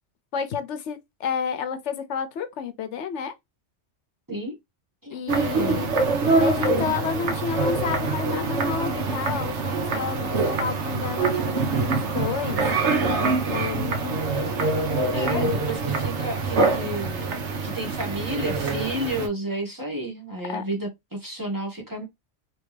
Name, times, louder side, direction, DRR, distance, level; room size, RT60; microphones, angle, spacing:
voice 1, 0.3-3.3 5.1-6.0 6.4-12.6 13.1-14.2 15.2-15.6 20.5-20.6, left 7 dB, 75° left, 0.9 m, -30 dB
sound 1, 5.3-19.3, right 3 dB, 70° right, 1.1 m, -25 dB
voice 2, 15.1-22.0, right 1 dB, 15° right, 1.2 m, -31 dB
3.3 x 2.9 x 3.2 m
omnidirectional pair, 1.2 m